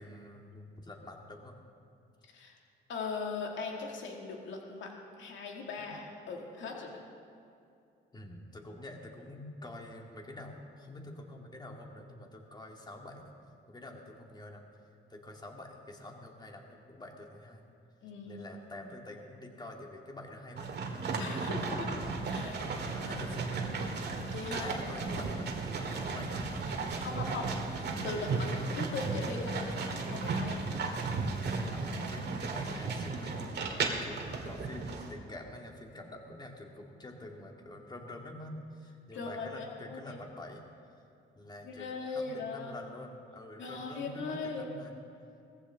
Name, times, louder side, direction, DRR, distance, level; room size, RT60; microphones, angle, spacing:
voice 1, 0.0-1.6 5.8-5.9 8.1-13.3 13.7-14.7 15.1-17.6 18.2-20.8 21.4-21.5 22.6-23.8 24.6-25.5 25.8-27.6 31.7-40.6 41.3-44.9, left 1 dB, 20° left, 1 dB, 2.1 m, -47 dB
voice 2, 2.9-4.9 5.2-7.0 18.0-18.5 18.8-18.9 21.2-22.6 24.3-24.7 27.0-27.6 28.0-30.7 39.1-40.2 41.6-42.7 43.6-44.7, left 4 dB, 75° left, 0 dB, 2.2 m, -39 dB
sound 1, 20.6-35.1, right 3 dB, 60° right, 2.0 m, -35 dB
18.5 x 14.5 x 3.7 m, 2.5 s
cardioid pair, 90°, 20 cm